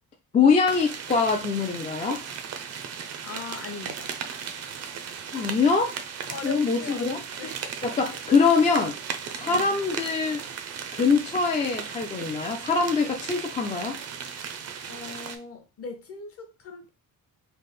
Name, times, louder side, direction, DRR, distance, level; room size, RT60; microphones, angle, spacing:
voice 1, 0.3-2.2 5.3-6.0 6.4-7.2 7.8-9.0 9.4-10.4 10.9-14.0, left 5 dB, 20° left, 0.3 m, -23 dB
sound 1, 0.7-15.4, right 7 dB, 45° right, 0.5 m, -37 dB
voice 2, 3.2-4.2 6.3-8.0 9.2-9.8 14.9-16.9, left 3 dB, 40° left, 0.7 m, -40 dB
3.4 x 2.0 x 4.0 m
cardioid pair, 165°, 35 cm